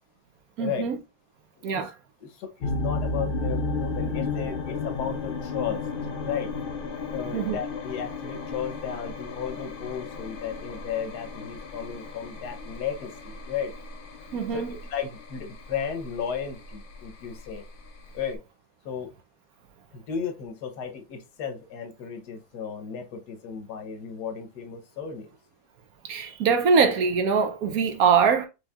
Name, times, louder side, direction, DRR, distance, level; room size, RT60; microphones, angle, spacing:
voice 1, 0.6-1.0 1.6-1.9 7.3-7.6 14.3-14.7 26.0-28.5, right 6 dB, 70° right, 1.1 m, -22 dB
voice 2, 2.2-5.8 6.2-6.5 7.1-13.7 14.5-14.6 14.9-17.6 18.1-18.4 18.8-19.1 19.9-25.3, left 7 dB, 90° left, 1.4 m, -34 dB
sound 1, 2.6-18.4, left 3 dB, 45° left, 0.7 m, -34 dB
6.2 x 3.3 x 2.4 m
omnidirectional pair, 1.7 m